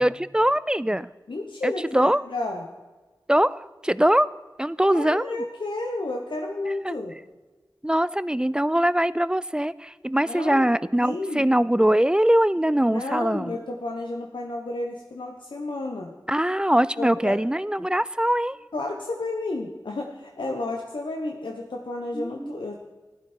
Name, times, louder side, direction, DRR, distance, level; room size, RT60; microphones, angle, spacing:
voice 1, 0.0-1.1 1.6-2.2 3.3-4.3 4.6-5.4 6.8-7.0 7.8-13.6 16.3-18.6 22.1-22.6, right 1 dB, 10° right, 18 dB, 0.3 m, -22 dB
voice 2, 1.3-2.7 4.8-7.1 10.3-10.7 11.0-11.4 12.9-16.1 17.0-17.4 18.7-22.8, left 2 dB, 90° left, 1 dB, 1.2 m, -31 dB
15.5 x 12.0 x 4.5 m, 1.2 s
wide cardioid pair, 70°, 8 cm